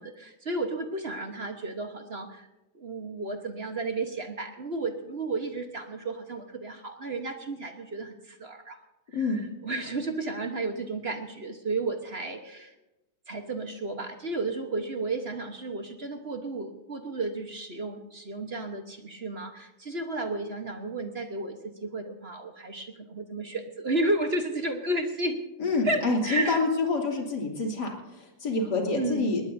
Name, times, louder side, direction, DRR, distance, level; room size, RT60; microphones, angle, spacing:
voice 1, 0.0-2.5 2.7-8.8 9.2-12.7 13.3-25.4 25.8-26.6 28.9-29.3, right 2 dB, 35° right, 5 dB, 1.2 m, -33 dB
voice 2, 25.6-29.4, left 3 dB, 50° left, 0 dB, 3.4 m, -27 dB
20.0 x 19.5 x 2.7 m, 1.0 s
omnidirectional pair, 2.4 m